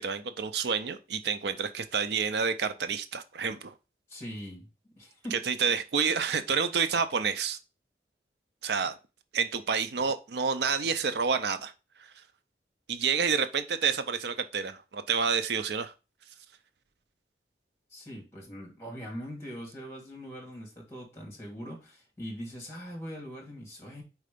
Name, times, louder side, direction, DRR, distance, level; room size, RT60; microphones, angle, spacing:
voice 1, 0.0-3.7 5.3-7.6 8.6-8.9 9.3-11.7 12.9-15.9, right 6 dB, 75° right, 0.5 m, -29 dB
voice 2, 4.1-4.7 5.0-5.4 17.9-24.0, equal, 15° left, 2.4 m, -41 dB
4.7 x 4.2 x 5.0 m
head